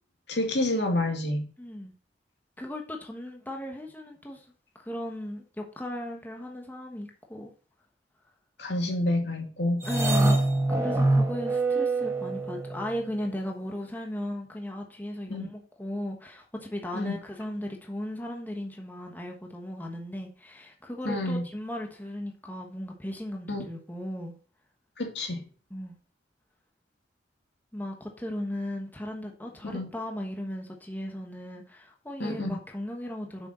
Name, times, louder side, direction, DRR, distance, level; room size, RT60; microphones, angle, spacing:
voice 1, 0.3-1.5 8.6-9.8 15.3-15.5 16.9-17.2 21.1-21.4 23.5-23.6 25.0-25.4 29.7-29.9 32.2-32.6, left 1 dB, 70° left, 2.3 m, -28 dB
voice 2, 1.6-1.9 2.6-4.5 4.8-7.5 9.8-10.4 10.7-24.4 25.7-26.0 27.7-33.5, left 1 dB, 10° left, 1.2 m, -36 dB
sound 1, 9.8-12.9, right 2 dB, 15° right, 1.6 m, -25 dB
7.9 x 6.4 x 4.3 m
head